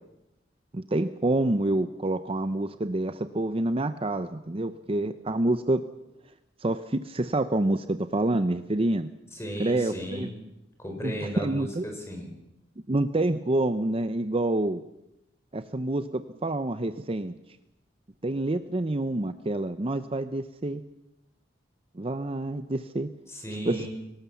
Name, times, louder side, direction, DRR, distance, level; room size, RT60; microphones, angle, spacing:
voice 1, 0.7-5.8 6.6-9.1 9.6-10.3 11.0-11.8 12.9-14.8 15.5-17.3 18.2-20.8 21.9-23.1 23.7-23.9, right 2 dB, 30° right, 11 dB, 0.7 m, -27 dB
voice 2, 9.3-10.4 10.8-12.3 23.3-23.9, equal, 15° left, 2 dB, 5.3 m, -35 dB
23.0 x 18.5 x 7.1 m, 0.89 s
head